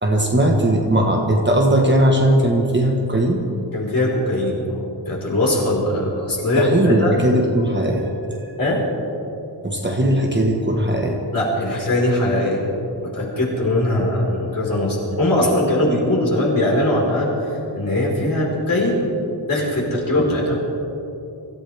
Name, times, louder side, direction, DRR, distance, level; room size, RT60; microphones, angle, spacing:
voice 1, 0.0-3.4 6.6-8.4 9.6-11.2 20.2-20.3, right 1 dB, 25° right, 0 dB, 1.4 m, -18 dB
voice 2, 3.7-7.1 8.6-8.8 11.3-12.6 13.0-19.0 19.5-20.6, left 1 dB, 45° left, -4 dB, 4.7 m, -21 dB
25.0 x 15.0 x 3.5 m, 2.9 s
wide cardioid pair, 170°, 46 cm